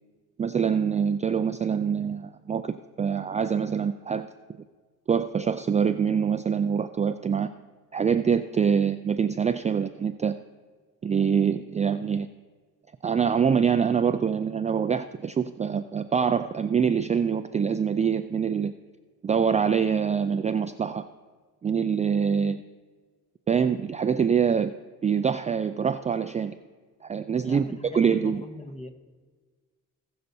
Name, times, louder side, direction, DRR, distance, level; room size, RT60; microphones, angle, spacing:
voice 1, 0.4-4.3 5.1-7.5 7.9-10.4 11.0-12.3 13.0-18.7 19.2-21.0 21.6-22.6 23.5-24.7 25.0-26.5 27.0-27.6 27.9-28.4, right 7 dB, 20° right, 9 dB, 0.3 m, -25 dB
voice 2, 27.4-28.9, left 2 dB, 20° left, 7 dB, 1.1 m, -40 dB
19.5 x 6.7 x 2.7 m, 1.4 s
cardioid pair, 90°, 33 cm